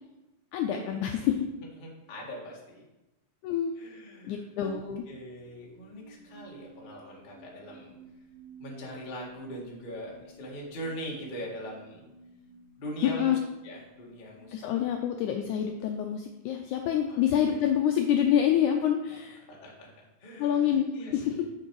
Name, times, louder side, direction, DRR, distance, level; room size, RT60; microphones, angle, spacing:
voice 1, 0.5-1.4 3.4-3.7 4.2-5.0 13.0-13.4 14.5-19.4 20.4-21.4, left 9 dB, 80° left, 4 dB, 1.7 m, -27 dB
voice 2, 1.8-2.8 3.8-4.8 5.1-7.9 8.6-12.1 12.8-13.4 13.6-14.6 17.1-17.2 19.5-21.4, equal, 35° left, -3 dB, 0.8 m, -41 dB
sound 1, 4.9-17.0, right 2 dB, 90° right, 4.2 m, -54 dB
7.2 x 6.9 x 4.7 m, 1.0 s
omnidirectional pair, 4.0 m